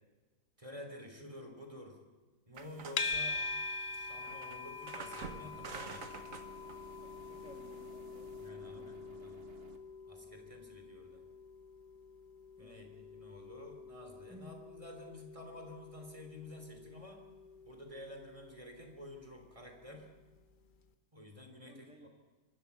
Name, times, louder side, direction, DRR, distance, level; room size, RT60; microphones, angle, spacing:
voice 1, 0.6-2.0 2.5-3.4 3.9-6.2 8.3-9.4 10.0-11.2 12.6-17.3 17.6-20.1 21.1-22.1, left 1 dB, 20° right, 4 dB, 3.3 m, -51 dB
sound 1, 2.6-8.5, right 5 dB, 55° right, 1.7 m, -50 dB
sound 2, 3.0-20.2, left 4 dB, 40° left, 0.8 m, -45 dB
sound 3, 5.4-9.8, right 4 dB, 40° right, 1.6 m, -56 dB
voice 2, 7.0-9.0 12.6-12.9 14.3-14.6 21.7-22.1, equal, 5° right, 1 dB, 1.5 m, -58 dB
23.0 x 13.5 x 8.3 m, 1.3 s
omnidirectional pair, 1.7 m